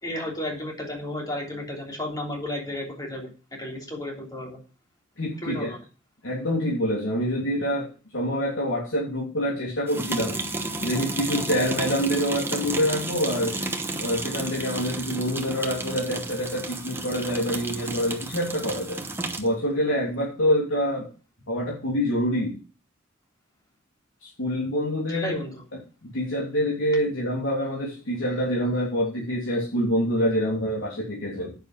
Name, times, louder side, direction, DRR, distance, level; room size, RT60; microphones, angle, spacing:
voice 1, 0.0-3.3 3.6-4.6 5.4-5.8 25.1-25.6, left 1 dB, 20° left, 1 dB, 3.1 m, -33 dB
voice 2, 5.2-5.7 6.2-10.4 10.8-13.6 14.0-19.0 19.4-21.1 21.5-22.6 24.2-25.4 25.7-31.6, equal, 85° left, -4 dB, 3.2 m, -26 dB
sound 1, 9.9-19.5, right 2 dB, 10° right, 1.1 m, -32 dB
9.3 x 6.6 x 7.4 m, 0.34 s
head